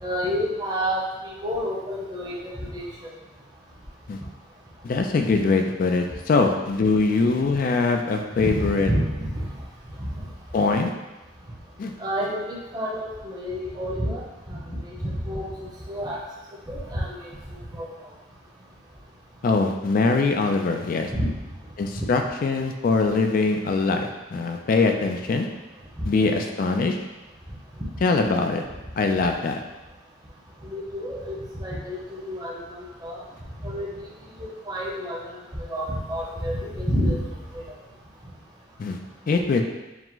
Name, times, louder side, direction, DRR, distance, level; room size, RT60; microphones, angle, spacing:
voice 1, 0.0-3.1 8.4-9.5 10.0-10.1 12.0-14.2 14.5-16.2 16.7-17.3 17.7-17.9 21.1-21.3 30.6-33.2 33.6-33.9 34.4-37.2 37.5-37.6, equal, 20° right, -4 dB, 0.8 m, -29 dB
voice 2, 4.8-8.9 10.5-10.9 11.8-11.9 19.4-21.1 21.8-25.5 26.0-27.0 28.0-28.6 29.0-29.6 38.8-39.0 39.3-39.6, left 3 dB, 45° left, 4 dB, 0.3 m, -22 dB
4.7 x 2.1 x 3.8 m, 1.0 s
head